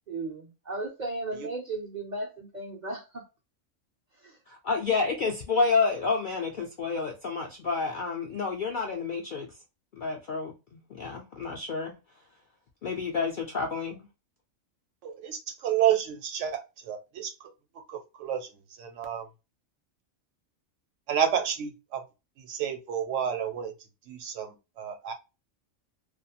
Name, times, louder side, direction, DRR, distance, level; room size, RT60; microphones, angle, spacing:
voice 1, 0.1-3.2 4.2-4.4, right 2 dB, 55° right, 0.5 m, -35 dB
voice 2, 4.5-9.5 10.0-11.9 12.8-14.1, left 4 dB, 65° left, 0.5 m, -29 dB
voice 3, 15.0-16.6 16.9-17.5 17.9-18.5 18.8-19.3 21.1-22.0 22.5-23.7 24.1-25.1, right 9 dB, 70° right, 0.9 m, -30 dB
2.4 x 2.3 x 2.7 m
omnidirectional pair, 1.4 m